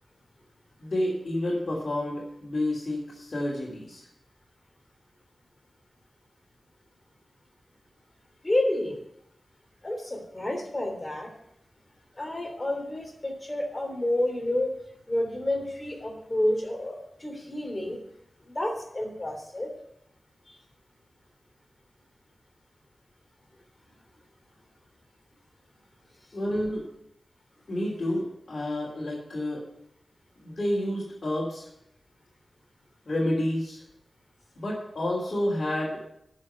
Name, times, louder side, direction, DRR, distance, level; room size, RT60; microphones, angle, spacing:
voice 1, 0.8-4.0 26.3-26.8 27.7-29.6 30.4-31.6 33.1-33.8 34.6-36.0, left 1 dB, 55° left, -6 dB, 3.3 m, -29 dB
voice 2, 8.4-9.0 9.8-11.3 12.1-14.7 15.1-18.0 18.5-19.7, left 1 dB, 25° left, 2 dB, 3.2 m, -29 dB
11.0 x 6.4 x 7.8 m, 0.76 s
wide cardioid pair, 90°, 0 cm